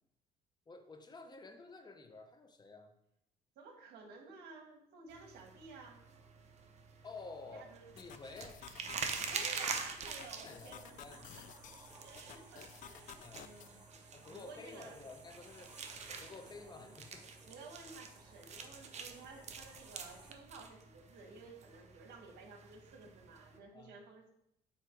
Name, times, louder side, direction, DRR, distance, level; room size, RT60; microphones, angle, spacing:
voice 1, 0.7-2.9 7.0-7.7 7.9-8.6 10.4-11.3 13.2-13.5 14.1-15.7 16.1-17.3 23.7-24.0, left 3 dB, 25° left, 6 dB, 0.9 m, -51 dB
voice 2, 3.5-6.0 7.5-7.9 9.3-10.9 11.4-11.5 12.0-15.0 16.7-16.9 17.5-24.3, right 4 dB, 75° right, 3 dB, 1.5 m, -53 dB
sound 1, 5.1-23.6, right 5 dB, 40° right, 0.7 m, -46 dB
sound 2, 8.0-13.7, left 10 dB, 50° left, 0.4 m, -54 dB
sound 3, 10.0-20.3, right 2 dB, 25° right, 1.3 m, -60 dB
7.7 x 2.9 x 5.0 m, 0.79 s
cardioid pair, 110°, 17 cm